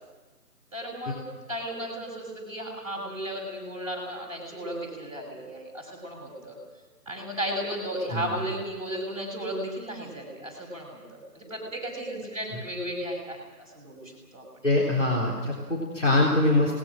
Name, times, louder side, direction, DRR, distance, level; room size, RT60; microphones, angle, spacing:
voice 1, 0.7-6.6 7.0-13.4 13.7-14.6, equal, 20° right, -2 dB, 6.8 m, -35 dB
voice 2, 14.6-16.7, left 2 dB, 45° left, -4 dB, 3.7 m, -23 dB
26.5 x 20.0 x 6.3 m, 1.2 s
figure-of-eight pair, 180°, 49 cm